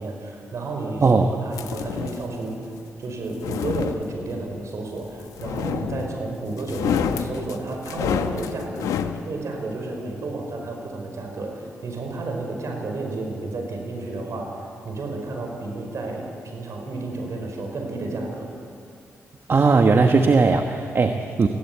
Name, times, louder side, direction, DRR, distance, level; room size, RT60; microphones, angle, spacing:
voice 1, 0.0-2.7 3.0-9.0 9.2-18.5, right 2 dB, 65° right, 2 dB, 5.1 m, -31 dB
sound 1, 1.5-2.3 3.2-4.5 5.4-6.2 6.6-9.2, left 8 dB, 85° left, 0.9 m, -28 dB
voice 2, 19.5-21.5, right 4 dB, 50° right, 5 dB, 1.3 m, -18 dB
20.0 x 16.0 x 8.5 m, 2.5 s
supercardioid pair, 50°, 6 cm